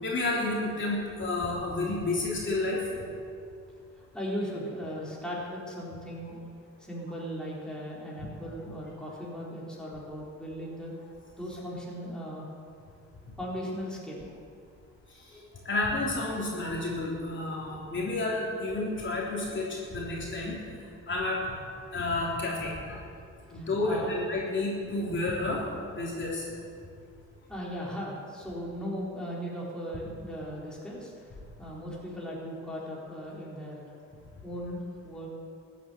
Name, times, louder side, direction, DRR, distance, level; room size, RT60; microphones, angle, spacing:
voice 1, 0.0-2.8 15.1-23.0 23.5-25.6 25.9-26.5, left 2 dB, 40° left, -4 dB, 3.4 m, -31 dB
voice 2, 4.1-6.4 6.8-10.9 11.4-12.4 13.4-14.2 23.5-24.1 27.5-33.8 34.4-35.3, equal, 5° left, -5 dB, 4.0 m, -37 dB
14.0 x 9.3 x 8.0 m, 2.4 s
cardioid pair, 90°, 30 cm